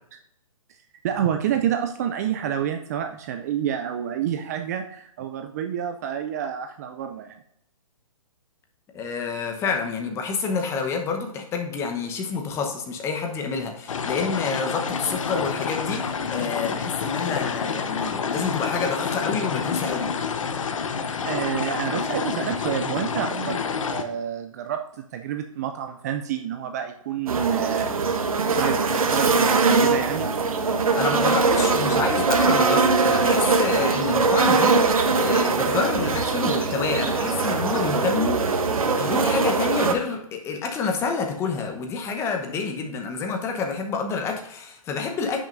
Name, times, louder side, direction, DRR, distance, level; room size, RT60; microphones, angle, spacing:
voice 1, 1.0-7.4 21.2-27.9 28.4-30.3, right 9 dB, 30° right, 6 dB, 0.4 m, -28 dB
voice 2, 8.9-20.1 31.0-45.4, left 5 dB, 15° left, 4 dB, 0.9 m, -28 dB
sound 1, 13.9-24.0, left 6 dB, 65° left, 1.0 m, -28 dB
sound 2, 27.3-39.9, right 4 dB, 80° right, 1.2 m, -21 dB
10.0 x 6.2 x 2.6 m, 0.76 s
hypercardioid pair, 150°, 18 cm